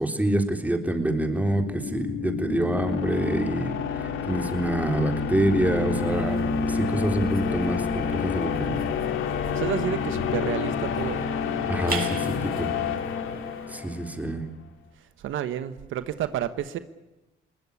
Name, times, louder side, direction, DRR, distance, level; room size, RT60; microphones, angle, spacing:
voice 1, 0.0-8.9 11.7-12.7 13.7-14.4, right 1 dB, 10° right, 5 dB, 3.7 m, -26 dB
sound 1, 1.3-14.1, left 6 dB, 85° left, 2.6 m, -28 dB
sound 2, 5.9-13.7, right 5 dB, 45° right, 7.0 m, -42 dB
voice 2, 9.5-11.2 15.2-16.8, right 11 dB, 80° right, 12 dB, 1.2 m, -30 dB
22.0 x 19.5 x 8.5 m, 1.0 s
cardioid pair, 90°, 20 cm